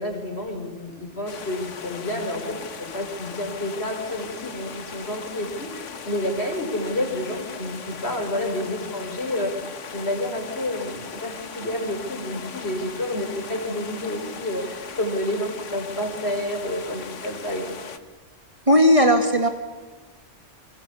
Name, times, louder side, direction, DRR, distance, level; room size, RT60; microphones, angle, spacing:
voice 1, 0.0-9.5 9.9-17.6, left 1 dB, 60° left, 4 dB, 5.3 m, -29 dB
sound 1, 1.3-18.0, left 6 dB, 80° left, 1.6 m, -38 dB
voice 2, 18.7-19.5, equal, 30° right, 5 dB, 2.1 m, -16 dB
29.0 x 24.5 x 7.1 m, 1.3 s
omnidirectional pair, 1.2 m